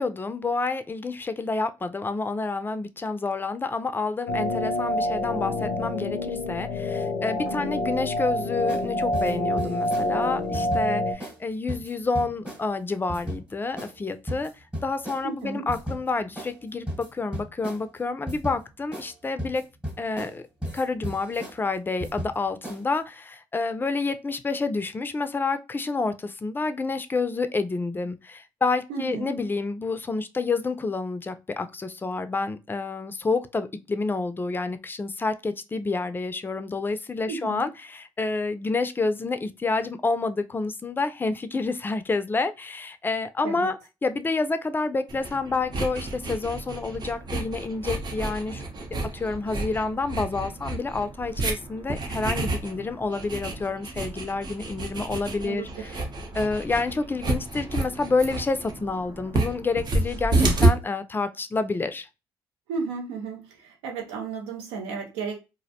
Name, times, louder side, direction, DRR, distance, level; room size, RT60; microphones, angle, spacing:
voice 1, 0.0-14.5 14.8-19.6 20.0-20.4 20.7-48.6 49.1-56.0 56.3-62.1, left 3 dB, 20° left, 0.4 m, -29 dB
sound 1, 4.3-11.1, left 1 dB, 90° left, 0.4 m, -27 dB
sound 2, 8.7-8.9 9.1-10.1 10.5-10.8 11.2-11.4 11.7-12.6 13.1-13.4 13.8-14.0 14.3-15.2 15.7-16.0 16.4-16.5 16.9-17.8 18.3-18.6 18.9-19.1 19.4-20.4 20.6-21.6 22.0-22.4 22.6-23.0, equal, 10° right, 1.0 m, -34 dB
voice 2, 15.2-15.7 28.9-29.3 37.3-37.7 43.4-43.7 55.4-55.7 62.7-65.4, right 5 dB, 85° right, 0.7 m, -33 dB
sound 3, 45.1-60.7, right 2 dB, 45° right, 0.7 m, -29 dB
2.4 x 2.0 x 2.7 m
supercardioid pair, 65°, 10 cm